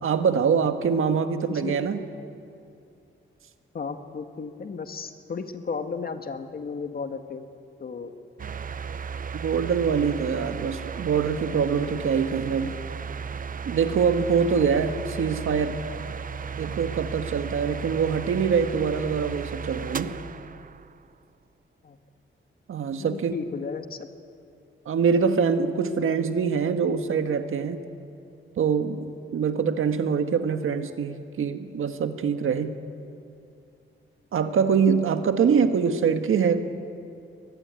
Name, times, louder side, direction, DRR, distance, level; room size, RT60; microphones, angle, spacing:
voice 1, 0.0-2.0 9.4-12.7 13.6-15.8 16.6-20.2 22.7-23.3 24.8-27.8 28.6-32.8 34.3-36.6, right 6 dB, 80° right, 7 dB, 1.6 m, -24 dB
voice 2, 1.3-1.7 3.7-7.4 7.8-8.1 21.8-22.0 23.0-24.1, left 5 dB, 45° left, 7 dB, 1.7 m, -34 dB
sound 1, 8.4-21.0, right 6 dB, 40° right, 0.7 m, -35 dB
24.0 x 20.5 x 9.6 m, 2.5 s
wide cardioid pair, 130°, 21 cm